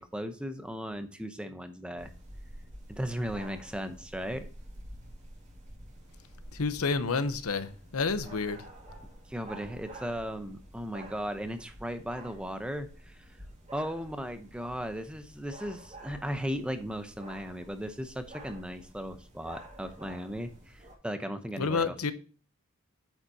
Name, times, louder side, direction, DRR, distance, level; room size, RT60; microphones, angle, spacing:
voice 1, 0.0-2.1 2.9-4.5 9.3-13.2 13.7-22.0, equal, 5° right, 0.7 m, -36 dB
sound 1, 2.0-21.0, right 1 dB, 30° right, 2.2 m, -49 dB
voice 2, 6.5-8.6 21.6-22.1, left 4 dB, 90° left, 0.8 m, -29 dB
8.9 x 7.3 x 2.8 m
head